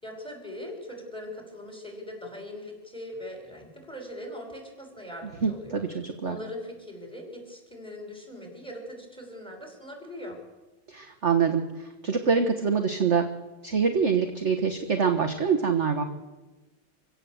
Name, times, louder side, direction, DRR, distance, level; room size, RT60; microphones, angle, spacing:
voice 1, 0.0-5.8 6.2-10.4, left 1 dB, ahead, 2 dB, 5.7 m, -41 dB
voice 2, 5.4-6.4 10.9-13.3 13.6-16.0, right 6 dB, 40° right, 6 dB, 1.5 m, -25 dB
26.5 x 16.5 x 8.0 m, 1.1 s
omnidirectional pair, 2.2 m